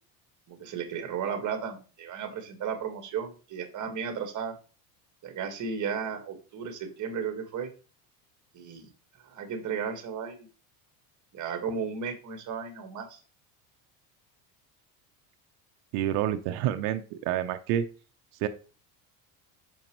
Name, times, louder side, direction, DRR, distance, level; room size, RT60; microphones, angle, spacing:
voice 1, 0.5-4.5 5.2-7.7 8.5-8.9 9.2-10.5 11.3-13.2, right 6 dB, 40° right, 6 dB, 1.6 m, -34 dB
voice 2, 15.9-17.9 18.4-18.5, right 11 dB, 70° right, 7 dB, 0.7 m, -28 dB
6.2 x 5.0 x 3.0 m, 0.36 s
supercardioid pair, 115°, 44 cm